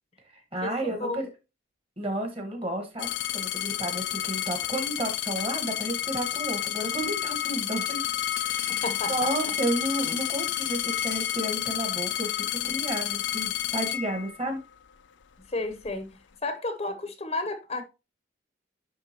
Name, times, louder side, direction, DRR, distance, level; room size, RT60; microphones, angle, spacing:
voice 1, 0.3-1.3 2.0-3.1 3.3-8.0 8.4-8.8 9.1-14.6, right 1 dB, 30° right, 1.5 m, -32 dB
sound 1, 3.0-14.7 15.5-16.0, left 12 dB, 75° left, 0.4 m, -30 dB
voice 2, 8.7-9.5 15.5-17.8, left 2 dB, 35° left, 0.7 m, -32 dB
10.5 x 3.5 x 2.9 m
head